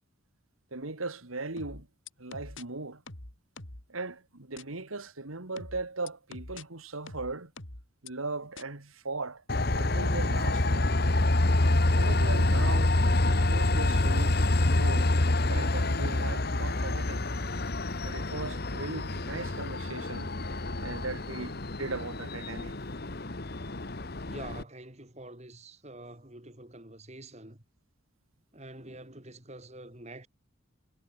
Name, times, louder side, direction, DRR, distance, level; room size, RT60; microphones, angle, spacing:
voice 1, 0.7-1.9 2.2-3.0 3.9-7.5 8.0-9.4 9.7-10.9 11.9-12.9 13.3-15.1 15.5-17.3 18.0-20.3 20.8-22.7, right 3 dB, 85° right, 2.3 m, -38 dB
sound 1, 1.6-2.6 3.1-3.9 4.6-4.7 5.6-6.6 7.1-8.1 8.6-8.7, left 2 dB, 65° left, 3.3 m, -44 dB
Train, 9.5-24.6, left 2 dB, 50° left, 1.4 m, -27 dB
voice 2, 24.3-27.6 28.5-30.3, right 2 dB, 30° right, 3.6 m, -46 dB
head